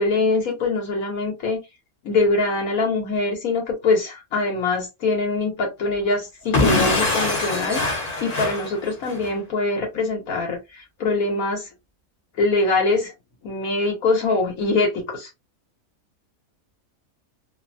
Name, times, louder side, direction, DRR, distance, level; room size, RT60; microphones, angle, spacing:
voice 1, 0.0-1.6 2.0-7.8 8.2-11.7 12.4-13.1 13.4-15.3, left 3 dB, 75° left, 1.5 m, -23 dB
Explosion / Shatter, 6.5-9.3, left 3 dB, 35° left, 0.7 m, -23 dB
3.0 x 2.1 x 2.6 m
omnidirectional pair, 1.5 m